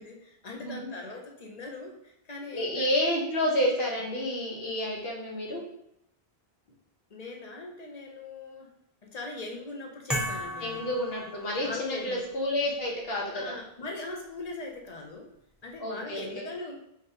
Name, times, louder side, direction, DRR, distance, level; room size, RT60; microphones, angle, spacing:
voice 1, 0.0-2.9 7.1-8.7 9.0-10.9 11.6-12.2 13.3-15.3 15.6-16.7, left 3 dB, 45° left, 1 dB, 0.7 m, -40 dB
voice 2, 0.6-0.9 2.5-5.6 10.6-13.5 15.8-16.4, left 1 dB, 70° left, -2 dB, 1.3 m, -30 dB
sound 1, 10.1-12.0, equal, ahead, 0.8 m, -35 dB
4.9 x 3.4 x 2.8 m, 0.77 s
omnidirectional pair, 1.1 m